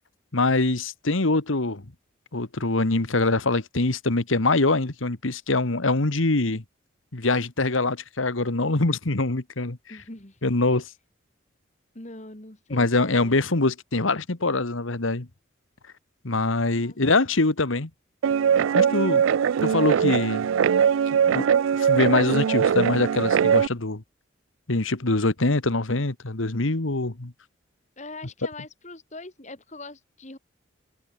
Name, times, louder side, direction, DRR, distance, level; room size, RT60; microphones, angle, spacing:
voice 1, 0.3-1.8 2.3-6.6 7.1-9.8 10.4-10.9 12.7-15.3 16.2-17.9 18.7-19.2 19.6-20.5 21.3-21.4 21.8-24.0 24.7-27.3, left 2 dB, 90° left, 1.7 m, -24 dB
voice 2, 9.9-10.4 11.9-13.3 16.7-17.0 18.7-19.2 28.0-30.4, left 2 dB, 35° left, 2.3 m, -42 dB
Guitar, 18.2-23.7, right 7 dB, 90° right, 0.4 m, -21 dB
head